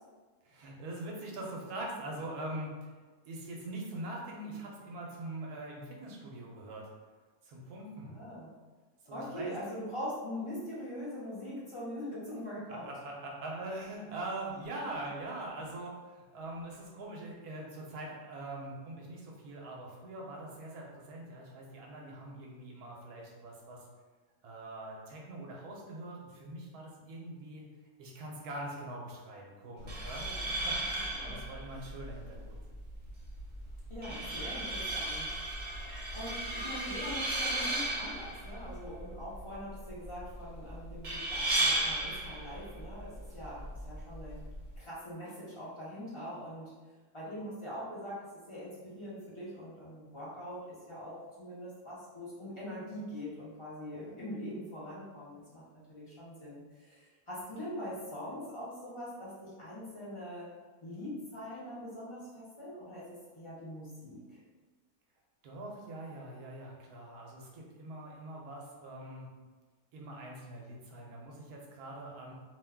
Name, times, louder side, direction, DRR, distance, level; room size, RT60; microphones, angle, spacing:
voice 1, 0.4-2.9 3.2-6.9 7.4-8.1 9.0-9.5 12.7-23.8 24.4-27.6 28.0-32.6 65.4-69.3 69.9-72.3, right 1 dB, 85° right, -2 dB, 1.2 m, -43 dB
voice 2, 8.0-8.5 9.0-12.9 30.2-30.5 31.1-31.4 33.9-44.4 44.8-46.7 47.1-60.5 60.8-64.4, equal, 35° left, -9 dB, 0.5 m, -43 dB
sound 1, 29.8-44.8, right 1 dB, 55° right, 0.5 m, -36 dB
2.8 x 2.2 x 3.4 m, 1.3 s
omnidirectional pair, 1.6 m